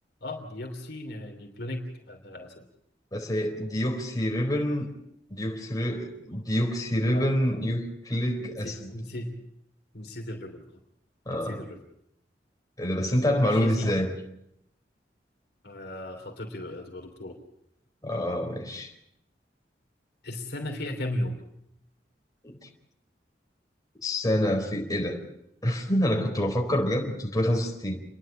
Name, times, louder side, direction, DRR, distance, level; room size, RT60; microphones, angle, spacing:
voice 1, 0.2-2.6 7.1-7.3 8.4-9.4 9.9-10.6 11.4-11.8 13.4-14.0 15.6-17.4 20.2-21.4, left 1 dB, 65° left, 3.1 m, -36 dB
voice 2, 3.1-4.9 5.3-8.9 11.3-11.6 12.8-14.1 18.0-18.9 22.4-22.7 24.0-25.2 25.6-28.0, equal, 20° left, 4.2 m, -27 dB
30.0 x 11.0 x 8.7 m
head